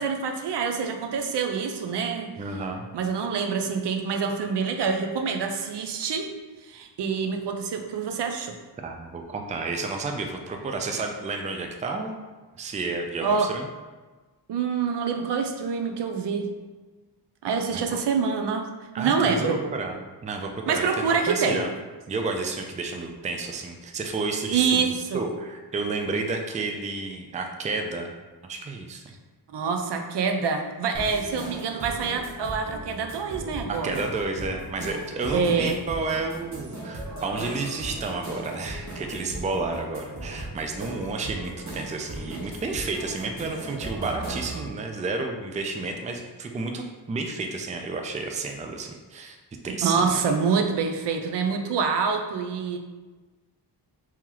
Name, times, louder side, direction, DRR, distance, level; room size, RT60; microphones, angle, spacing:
voice 1, 0.0-2.3 2.9-6.3 6.6-8.5 13.2-13.5 14.5-16.5 17.4-18.7 19.0-19.6 20.7-21.6 24.5-25.3 29.5-34.0 35.3-35.8 49.8-52.8, right 5 dB, 75° right, 4 dB, 0.5 m, -26 dB
voice 2, 2.4-2.9 8.8-12.2 12.6-13.7 17.7-17.8 18.9-20.0 20.2-21.7 22.1-28.1 28.5-29.0 33.7-49.4 49.6-50.2, right 3 dB, 20° right, 3 dB, 0.3 m, -31 dB
sound 1, 30.9-44.7, right 1 dB, 40° right, 1.0 m, -38 dB
3.0 x 2.9 x 3.7 m, 1.3 s
wide cardioid pair, 90°, 42 cm